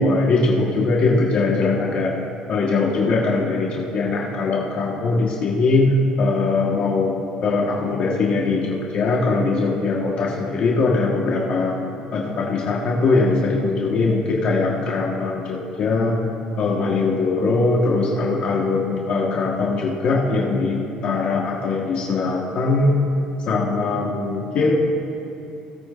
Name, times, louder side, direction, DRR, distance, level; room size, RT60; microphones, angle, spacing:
voice 1, 0.0-2.1 2.5-5.9 6.2-7.1 7.4-11.8 12.1-16.2 16.6-23.0 23.5-24.7, left 3 dB, 55° left, -2 dB, 1.3 m, -21 dB
19.0 x 8.7 x 2.5 m, 3.0 s
cardioid pair, 115°, 2 cm